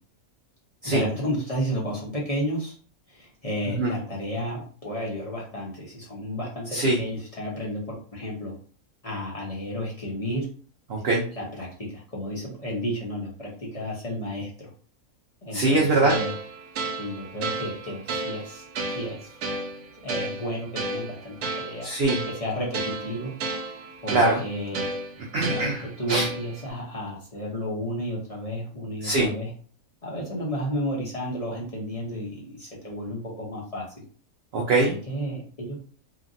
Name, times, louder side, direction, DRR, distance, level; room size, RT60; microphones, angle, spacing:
voice 1, 0.8-2.7 3.1-8.5 9.0-10.5 11.4-14.7 15.4-16.3 17.0-18.6 18.9-19.4 20.0-21.9 22.3-23.3 24.0-24.9 25.3-29.5 30.0-34.0 34.9-35.8, equal, 35° left, -4 dB, 0.6 m, -32 dB
voice 2, 10.9-11.3 15.5-16.1 21.8-22.2 24.1-24.4 25.3-26.3 29.0-29.3 34.5-34.9, right 2 dB, 60° right, -2 dB, 0.7 m, -22 dB
sound 1, 16.1-26.7, right 2 dB, 80° right, 1.0 m, -33 dB
2.9 x 2.5 x 2.5 m, 0.43 s
omnidirectional pair, 1.6 m